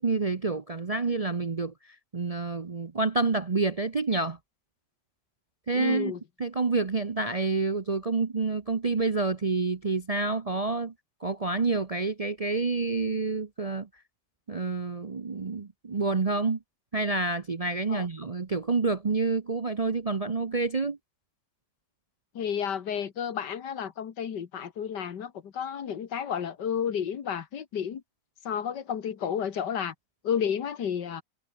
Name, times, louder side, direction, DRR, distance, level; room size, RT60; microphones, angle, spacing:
voice 1, 0.0-1.7 2.1-4.4 5.7-6.1 6.4-10.9 11.2-13.9 14.5-16.6 16.9-21.0, right 3 dB, 35° right, 0.5 m, -28 dB
voice 2, 5.7-6.2 17.9-18.1 22.4-28.0 28.5-29.9 30.2-31.2, left 8 dB, 90° left, 2.1 m, -31 dB
omnidirectional pair, 1.8 m